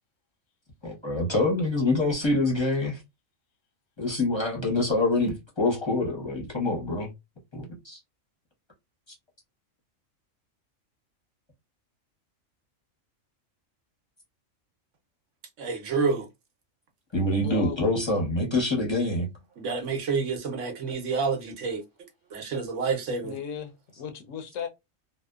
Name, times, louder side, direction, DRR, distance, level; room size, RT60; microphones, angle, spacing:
voice 1, 0.8-3.0 4.0-7.1 7.5-8.0 17.1-19.3, left 2 dB, 25° left, 0.8 m, -26 dB
voice 2, 15.6-16.3 19.6-21.8 22.3-23.4, right 5 dB, 70° right, 1.0 m, -28 dB
voice 3, 17.4-17.8 23.2-24.7, left 7 dB, 70° left, 0.9 m, -36 dB
2.7 x 2.1 x 2.2 m
omnidirectional pair, 1.4 m